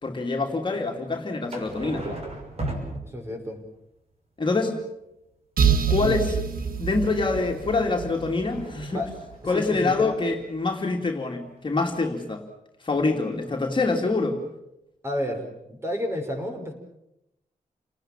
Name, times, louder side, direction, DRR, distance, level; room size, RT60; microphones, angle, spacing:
voice 1, 0.0-2.1 4.4-4.8 5.9-6.4 6.8-9.0 9.4-12.4 12.8-14.4, left 3 dB, 35° left, 1 dB, 2.8 m, -25 dB
sound 1, 1.5-3.6 6.5-9.7 11.6-11.7 11.9-12.0, right 1 dB, 45° right, 6.3 m, -38 dB
voice 2, 3.0-3.6 5.9-6.2 8.9-9.1 9.5-10.1 15.0-16.7, left 1 dB, 15° right, 3 dB, 5.8 m, -31 dB
sound 2, 5.6-9.3, right 7 dB, 80° right, 1.5 m, -26 dB
29.5 x 19.5 x 7.4 m, 0.85 s
wide cardioid pair, 135°, 15 cm